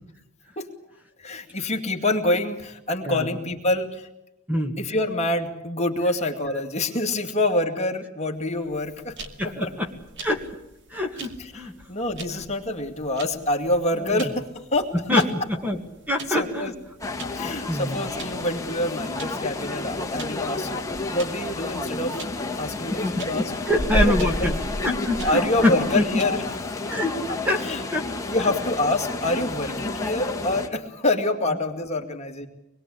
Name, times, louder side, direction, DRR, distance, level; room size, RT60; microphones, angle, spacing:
voice 1, 1.2-4.1 4.8-9.2 9.6-9.7 11.4-15.3 16.3-16.7 17.3-20.7 21.1-22.3 22.6-23.5 23.9-24.6 25.2-26.4 26.8-26.9 27.3-27.8 28.3-32.5, left 1 dB, 30° left, 3 dB, 2.4 m, -26 dB
sound 1, 8.7-26.2, equal, 60° right, 2.4 m, -35 dB
voice 2, 9.4-9.9 10.2-10.5 10.9-11.7 14.0-14.3 14.9-15.8 16.1-16.7 17.4-18.0 22.9-24.5 24.8-26.1 26.9-27.2 27.4-27.6 27.9-28.1, left 1 dB, 10° right, 4 dB, 2.1 m, -25 dB
sound 2, 17.0-30.7, left 3 dB, 15° left, 1.9 m, -31 dB
25.5 x 21.5 x 8.5 m, 0.88 s
head